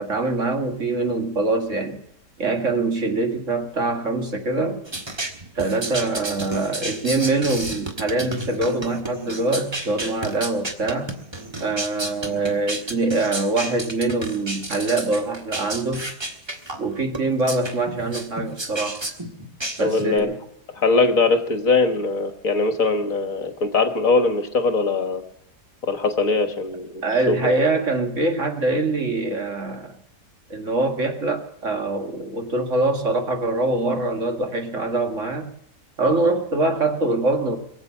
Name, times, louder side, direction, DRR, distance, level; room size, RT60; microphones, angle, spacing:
voice 1, 0.0-2.0 2.4-4.8 5.6-11.1 11.6-16.1 16.8-19.0 19.8-20.4 27.0-29.9 30.5-35.5 36.0-37.6, right 2 dB, 45° right, 4 dB, 2.1 m, -24 dB
sound 1, 4.8-20.2, right 2 dB, 15° right, 1.4 m, -32 dB
voice 2, 19.8-20.3 20.7-25.2 25.8-27.0 27.3-27.5, left 3 dB, 55° left, 7 dB, 1.7 m, -21 dB
22.5 x 8.0 x 7.3 m, 0.75 s
omnidirectional pair, 1.8 m